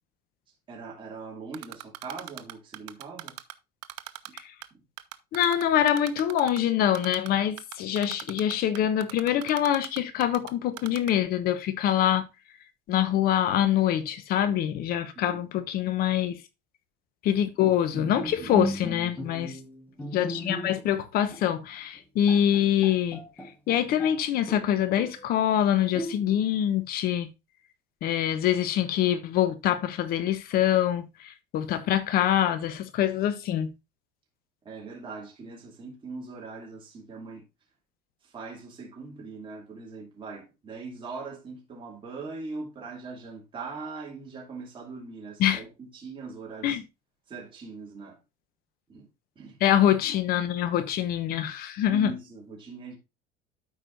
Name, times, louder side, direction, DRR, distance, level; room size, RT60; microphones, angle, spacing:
voice 1, 0.7-3.4 4.3-4.4 15.1-15.5 18.2-18.6 34.6-37.4 38.2-46.8 47.3-48.2 48.9-49.1 49.4-49.6 51.9-53.0, right 4 dB, 25° right, 2.6 m, -41 dB
Typing, 1.5-3.5 3.8-4.7 5.0-6.6 6.9-7.3 7.6-10.5 10.8-11.1, right 20 dB, 85° right, 0.7 m, -39 dB
voice 2, 5.3-12.2 12.9-16.4 17.2-19.6 20.1-23.2 23.7-27.3 28.0-33.7 45.4-45.6 46.6-46.8 49.6-52.1, left 10 dB, 55° left, 0.9 m, -25 dB
Bowed string instrument, 17.9-21.0 21.3-21.5 22.0-22.1 22.3-24.2 24.5-25.3 25.9-26.5, equal, 10° left, 1.4 m, -36 dB
12.5 x 4.9 x 2.5 m
cardioid pair, 145°, 18 cm